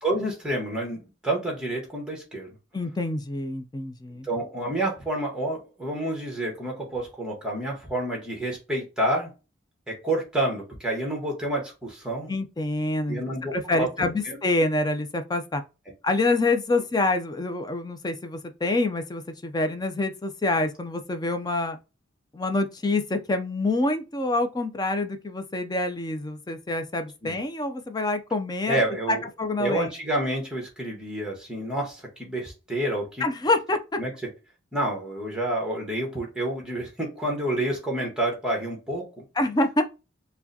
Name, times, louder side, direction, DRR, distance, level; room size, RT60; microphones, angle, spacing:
voice 1, 0.0-2.5 4.2-9.3 9.9-12.3 13.1-14.4 27.2-27.3 28.7-29.2 29.6-33.2 34.0-34.1 34.7-39.2, right 1 dB, 5° right, 1.2 m, -29 dB
voice 2, 2.7-4.3 12.3-13.2 13.5-15.6 16.0-21.8 22.3-28.8 29.1-29.9 33.2-34.0 39.4-39.8, left 2 dB, 20° left, 0.4 m, -26 dB
4.6 x 2.2 x 2.7 m
head